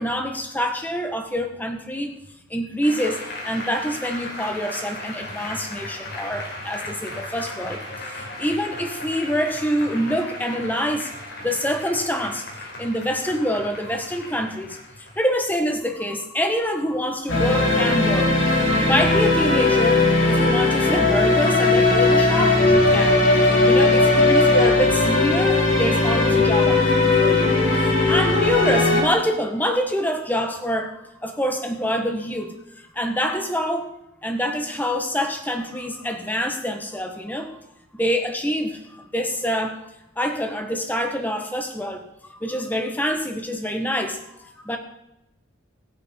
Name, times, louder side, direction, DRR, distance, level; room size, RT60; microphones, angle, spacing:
voice 1, 0.0-2.1 2.5-11.1 11.4-18.3 18.8-33.9 34.2-37.6 37.9-39.8 40.1-44.8, equal, 10° left, 4 dB, 1.7 m, -26 dB
Applause, 2.8-15.8, left 1 dB, 55° left, 4.9 m, -36 dB
sound 1, 17.3-29.0, left 2 dB, 85° left, 6.6 m, -18 dB
25.5 x 9.7 x 4.7 m, 0.87 s
head